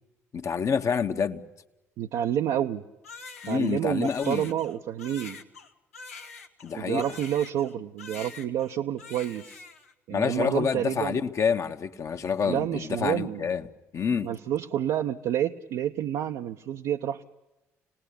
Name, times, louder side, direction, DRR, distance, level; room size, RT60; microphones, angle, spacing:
voice 1, 0.3-1.4 3.4-4.5 6.6-7.0 10.1-13.6 13.9-14.3, left 6 dB, 40° left, 7 dB, 1.4 m, -27 dB
voice 2, 2.0-2.8 3.5-5.4 6.7-9.6 10.1-11.2 12.4-13.5 14.2-17.2, right 10 dB, 60° right, 4 dB, 0.8 m, -29 dB
Crying sobbing, 3.0-7.7 8.0-8.7 9.0-9.9, left 4 dB, 85° left, 1.2 m, -45 dB
27.5 x 19.5 x 8.4 m, 1.0 s
figure-of-eight pair, 50°, 8 cm